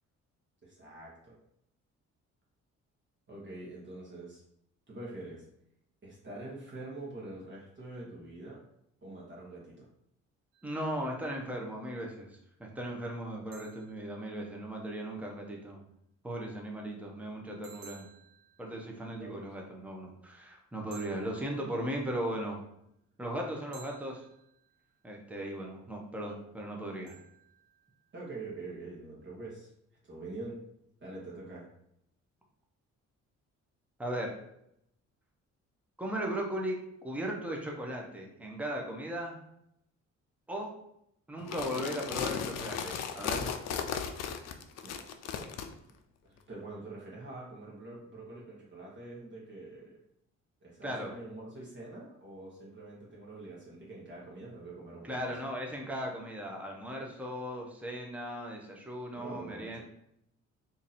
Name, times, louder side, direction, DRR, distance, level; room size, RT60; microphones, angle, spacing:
voice 1, 0.6-1.4 3.3-4.4 4.9-5.4 6.0-8.6 9.0-9.9 19.2-19.4 28.1-29.7 30.0-30.6 31.0-31.7 44.8-45.0 46.2-50.0 50.6-55.3 59.1-59.8, right 2 dB, 40° right, -5 dB, 1.2 m, -45 dB
sound 1, 10.5-11.3 13.5-14.9 17.6-19.4 20.9-22.3 23.7-25.1 27.1-28.3, right 6 dB, 90° right, 0.7 m, -57 dB
voice 2, 10.6-15.8 16.2-18.1 18.6-22.6 23.2-24.2 25.0-27.2 34.0-34.4 36.0-39.4 40.5-40.7 41.3-43.5 50.8-51.1 55.0-59.8, equal, 5° right, 0 dB, 0.7 m, -37 dB
sound 2, 41.4-45.7, left 7 dB, 60° left, 0.5 m, -36 dB
2.8 x 2.7 x 4.1 m, 0.77 s
cardioid pair, 90°, 30 cm